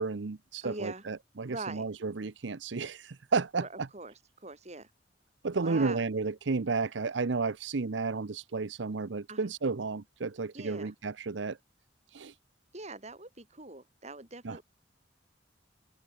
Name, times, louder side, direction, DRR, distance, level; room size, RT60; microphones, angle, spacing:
voice 1, 0.0-3.9 5.4-11.6 12.1-12.3 14.4-14.6, right 4 dB, 80° right, 0.7 m, -32 dB
voice 2, 0.6-1.0 1.5-1.8 3.5-4.1 4.4-4.9 5.6-6.0 9.3-9.5 10.5-10.9 12.7-14.6, right 2 dB, 35° right, 6.0 m, -42 dB
open air
head